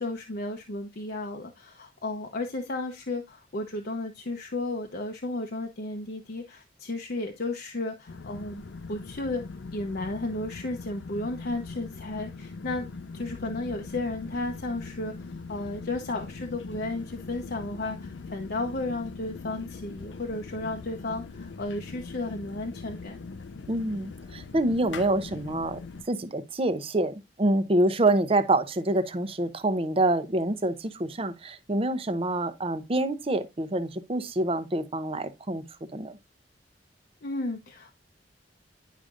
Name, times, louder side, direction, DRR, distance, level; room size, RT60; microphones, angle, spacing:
voice 1, 0.0-8.6 8.9-9.5 9.7-12.9 13.1-15.2 15.5-23.2 37.2-37.9, left 2 dB, 60° left, 0.8 m, -33 dB
sound 1, 8.1-26.0, left 4 dB, 90° left, 0.5 m, -41 dB
voice 2, 23.7-25.8 26.1-35.6 35.9-36.2, right 1 dB, 35° right, 0.7 m, -26 dB
10.0 x 5.0 x 2.5 m
head